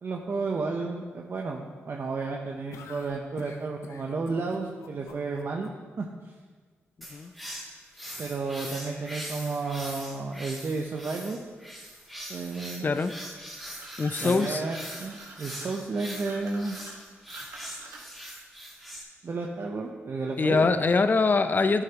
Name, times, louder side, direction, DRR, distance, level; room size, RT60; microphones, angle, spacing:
voice 1, 0.0-5.7 6.0-6.1 8.2-11.4 12.3-12.9 14.2-16.8 19.2-20.7, right 3 dB, 55° right, 0 dB, 0.8 m, -32 dB
sound 1, 2.7-5.7, left 5 dB, 85° left, 0.8 m, -47 dB
sound 2, 7.0-19.0, equal, ahead, 2.3 m, -42 dB
voice 2, 12.8-13.1 14.0-14.6 20.4-21.8, left 4 dB, 40° left, 11 dB, 0.5 m, -23 dB
sound 3, 13.7-18.3, right 3 dB, 80° right, 1.6 m, -46 dB
11.0 x 7.4 x 3.0 m, 1.5 s
cardioid pair, 65°, 5 cm